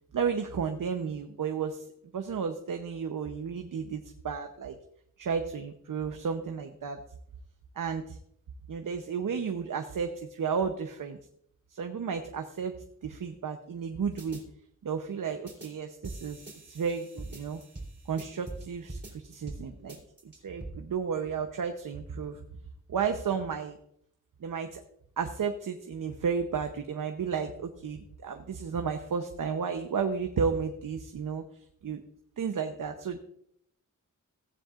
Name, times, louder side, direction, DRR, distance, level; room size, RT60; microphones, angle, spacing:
voice 1, 0.1-1.8 2.1-4.8 5.2-7.0 7.8-8.2 8.7-11.2 11.7-12.7 13.0-14.4 14.8-17.6 18.1-20.0 20.4-22.4 22.9-23.8 24.4-24.8 25.2-31.4 31.8-32.0 32.4-33.2, right 6 dB, 90° right, 5 dB, 0.8 m, -32 dB
sound 1, 14.2-14.4 15.5-15.7 16.0-18.6 18.9-19.6 19.9-20.7, right 2 dB, 35° right, 3.4 m, -42 dB
16.0 x 10.0 x 2.5 m, 0.71 s
wide cardioid pair, 70°, 32 cm